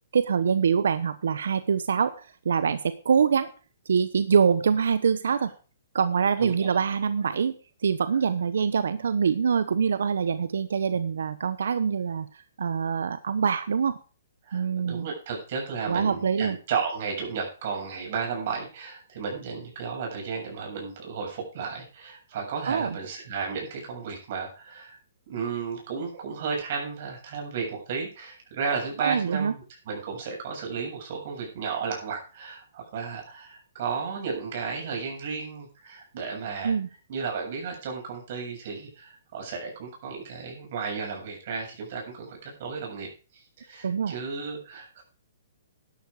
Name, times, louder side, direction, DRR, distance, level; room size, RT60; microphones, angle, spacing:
voice 1, 0.1-3.5 3.9-5.5 5.9-7.5 7.8-12.3 12.6-14.0 14.5-15.1 15.9-16.6 22.7-23.0 29.0-29.5 36.6-36.9 43.8-44.1, right 6 dB, 80° right, 13 dB, 0.9 m, -24 dB
voice 2, 6.4-6.7 14.4-25.0 25.3-36.7 37.1-45.0, right 5 dB, 40° right, 0 dB, 7.3 m, -33 dB
12.0 x 10.5 x 4.8 m, 0.36 s
hypercardioid pair, 170°, 0 cm